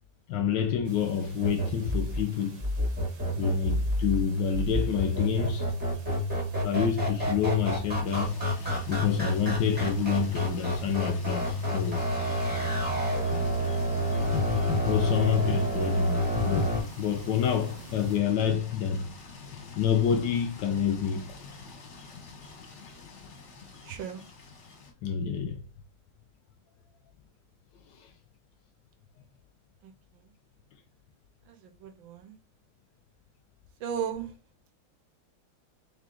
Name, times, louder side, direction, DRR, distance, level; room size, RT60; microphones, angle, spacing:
voice 1, 0.3-2.6 3.3-5.7 6.6-12.0 12.5-12.6 13.2-13.4 14.6-19.1 19.5-21.3 25.0-25.6, left 7 dB, 75° left, 1.1 m, -28 dB
sound 1, 0.8-18.2, right 5 dB, 50° right, 1.2 m, -48 dB
sound 2, 1.4-16.8, equal, 5° right, 1.2 m, -29 dB
sound 3, 8.1-24.9, left 4 dB, 50° left, 0.9 m, -46 dB
voice 2, 23.9-24.2 29.8-29.9 31.5-32.3 33.8-34.3, right 8 dB, 75° right, 1.4 m, -35 dB
3.7 x 3.5 x 3.7 m
omnidirectional pair, 2.3 m